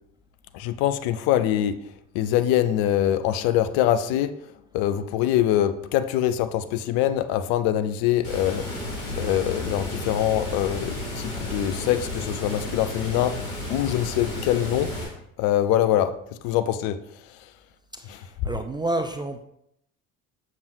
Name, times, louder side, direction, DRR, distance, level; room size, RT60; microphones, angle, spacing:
voice 1, 0.5-1.8 2.1-4.3 4.7-8.6 9.2-13.4 13.7-14.9 15.4-16.1 16.4-17.0 18.1-18.2, left 11 dB, 60° left, 0.6 m, -23 dB
Water, 8.2-15.0, left 1 dB, 85° left, 2.2 m, -33 dB
voice 2, 17.9-19.4, right 2 dB, 10° right, 0.3 m, -30 dB
7.0 x 6.2 x 2.6 m
hypercardioid pair, 65°, 42 cm